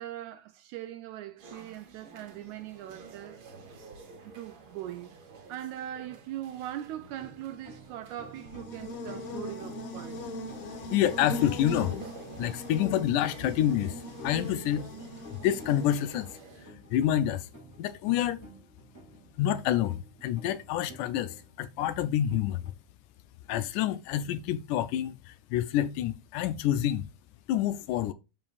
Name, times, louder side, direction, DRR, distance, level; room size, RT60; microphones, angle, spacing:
voice 1, 0.0-3.4 4.2-5.2 5.5-10.3, right 12 dB, 80° right, 1.8 m, -41 dB
sound 1, 1.4-16.7, right 4 dB, 50° right, 1.8 m, -50 dB
sound 2, 7.2-22.7, equal, 5° left, 1.7 m, -52 dB
Buzz, 8.2-16.4, left 2 dB, 65° left, 2.1 m, -40 dB
voice 2, 10.9-12.0 12.4-14.8 15.3-16.3 16.9-17.5 17.8-18.4 19.4-22.6 23.5-27.0 27.5-28.1, left 11 dB, 80° left, 1.9 m, -28 dB
13.0 x 4.4 x 2.4 m
omnidirectional pair, 3.8 m